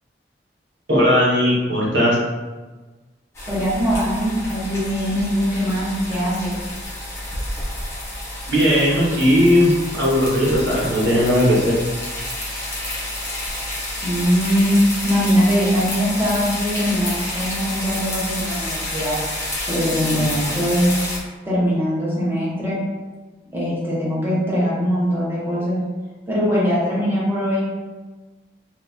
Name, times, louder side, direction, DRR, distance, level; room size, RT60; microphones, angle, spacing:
voice 1, 0.9-2.2 8.5-11.6, equal, 85° right, -5 dB, 1.2 m, -17 dB
sound 1, 3.3-21.2, left 1 dB, 15° left, 0.9 m, -29 dB
voice 2, 3.5-6.5 14.0-19.2 19.7-21.0 21.4-22.8 23.5-25.8 26.3-27.7, equal, 15° right, -8 dB, 1.2 m, -21 dB
3.0 x 2.5 x 3.6 m, 1.3 s
head